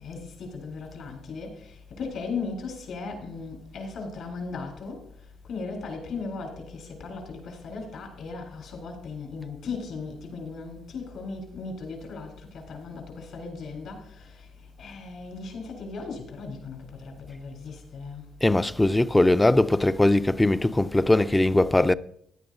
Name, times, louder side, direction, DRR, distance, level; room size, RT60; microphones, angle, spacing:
voice 1, 0.0-5.0 5.5-14.5 14.8-18.2, left 4 dB, 70° left, 4.1 m, -37 dB
voice 2, 18.4-21.9, left 1 dB, 10° left, 0.4 m, -20 dB
15.5 x 11.0 x 2.6 m
cardioid pair, 90°, 0 cm